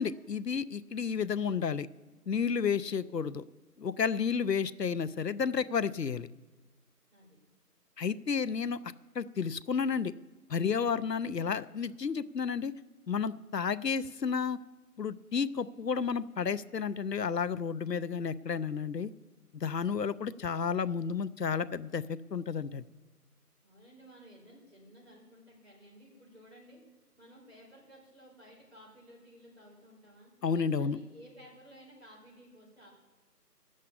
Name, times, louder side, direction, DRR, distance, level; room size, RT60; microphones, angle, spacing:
voice 1, 0.0-1.9 2.3-3.4 3.8-6.3 8.0-8.8 9.2-10.1 10.5-12.7 13.1-14.6 15.0-19.1 19.5-22.0 22.3-22.8 30.4-31.0, left 6 dB, 80° left, 16 dB, 0.7 m, -31 dB
voice 2, 23.6-26.8 27.2-30.3 30.8-32.9, equal, 40° right, -4 dB, 4.9 m, -55 dB
12.0 x 7.5 x 8.3 m, 1.2 s
figure-of-eight pair, 175°, 48 cm